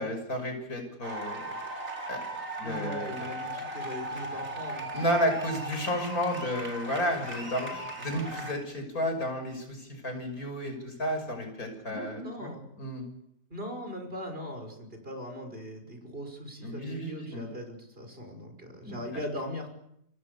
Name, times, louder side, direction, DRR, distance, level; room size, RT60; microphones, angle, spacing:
voice 1, 0.0-1.6 2.1-2.2 2.6-3.3 4.9-12.5 12.8-13.0 16.6-17.5 18.9-19.0, equal, 80° left, 6 dB, 6.7 m, -32 dB
sound 1, 1.0-8.5, right 1 dB, 65° right, 4.6 m, -38 dB
voice 2, 2.6-4.9 11.9-12.6 13.5-19.7, equal, 40° right, 5 dB, 6.3 m, -39 dB
28.0 x 25.0 x 7.0 m, 0.78 s
omnidirectional pair, 1.5 m